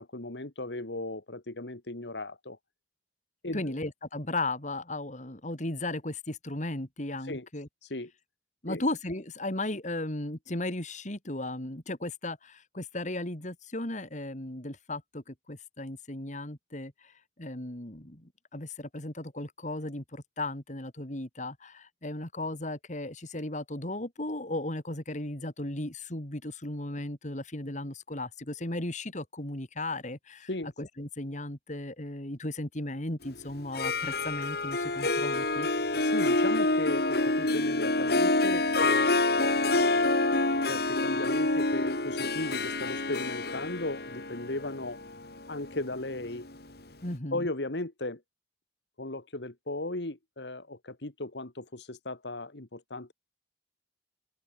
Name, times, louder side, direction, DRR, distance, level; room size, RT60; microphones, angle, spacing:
voice 1, 0.0-2.6 3.4-3.7 7.2-7.5 7.8-8.1 8.7-8.8 30.5-30.7 35.9-40.0 40.6-45.0 45.5-46.5 47.3-48.2 49.0-53.1, left 2 dB, 85° left, 2.4 m, -36 dB
voice 2, 3.5-7.7 8.6-17.1 17.4-30.5 30.8-35.7 47.0-47.5, left 2 dB, 45° left, 3.5 m, -36 dB
Harp, 33.6-46.5, left 2 dB, 65° left, 3.4 m, -27 dB
open air
head